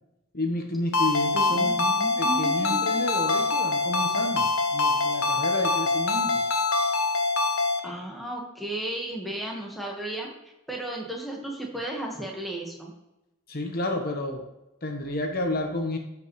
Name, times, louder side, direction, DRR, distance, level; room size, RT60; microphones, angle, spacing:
voice 1, 0.3-1.7 2.2-6.4 13.5-14.4 14.8-16.0, left 1 dB, 45° left, 4 dB, 1.1 m, -30 dB
Ringtone, 0.9-7.8, left 3 dB, 90° left, 1.0 m, -24 dB
voice 2, 1.5-2.8 7.8-10.3 10.7-12.9, right 1 dB, ahead, -1 dB, 1.4 m, -34 dB
14.0 x 5.3 x 3.2 m, 0.94 s
head